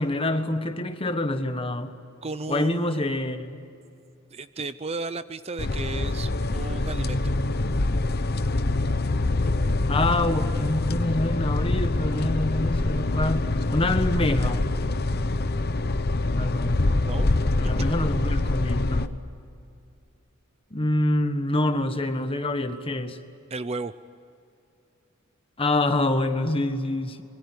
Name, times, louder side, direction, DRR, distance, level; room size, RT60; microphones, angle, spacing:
voice 1, 0.0-1.9 2.5-3.6 9.9-14.7 16.4-16.8 17.6-19.2 20.7-23.2 25.6-27.2, left 1 dB, 25° left, 8 dB, 1.5 m, -26 dB
voice 2, 2.2-3.2 4.3-7.3 16.8-17.4 23.5-23.9, right 3 dB, 30° right, 13 dB, 0.6 m, -34 dB
sound 1, 5.6-19.1, left 2 dB, 50° left, 1.0 m, -25 dB
26.0 x 23.0 x 9.9 m, 2.5 s
head